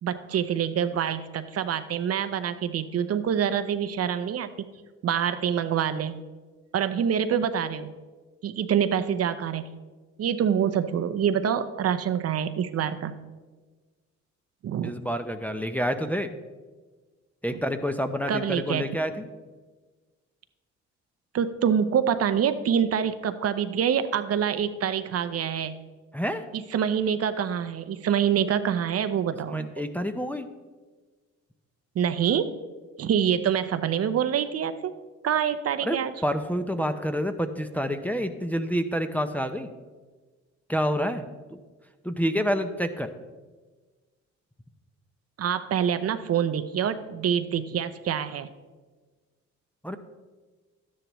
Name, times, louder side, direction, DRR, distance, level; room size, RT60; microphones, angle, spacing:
voice 1, 0.0-4.7 5.0-6.2 6.7-7.9 8.4-9.7 10.2-13.2 14.6-15.0 18.3-18.8 21.3-25.7 26.5-29.7 32.0-32.6 33.0-34.7 35.2-36.1 45.4-48.5, right 8 dB, 55° right, 11 dB, 0.6 m, -26 dB
voice 2, 14.8-16.3 17.4-19.1 26.1-26.4 29.5-30.5 35.8-39.7 40.7-41.2 41.5-41.6 42.0-43.1 49.8-50.0, equal, 5° left, 6 dB, 0.5 m, -28 dB
12.0 x 10.0 x 3.0 m, 1.3 s
cardioid pair, 90°, 30 cm